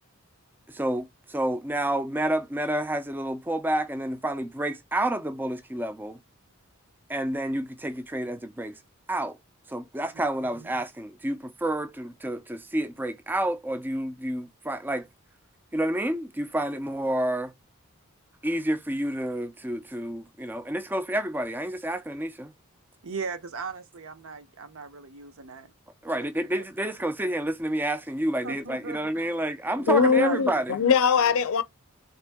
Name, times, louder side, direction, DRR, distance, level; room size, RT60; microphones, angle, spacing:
voice 1, 0.7-6.2 7.1-8.8 9.1-9.4 9.7-15.1 15.7-17.5 18.4-22.5 26.0-30.8, right 1 dB, 10° right, 0.3 m, -29 dB
voice 2, 23.0-25.7 28.4-29.1 29.8-30.6 31.3-31.4, right 5 dB, 70° right, 0.7 m, -37 dB
voice 3, 29.9-31.6, left 6 dB, 65° left, 0.5 m, -21 dB
3.6 x 2.9 x 3.4 m
head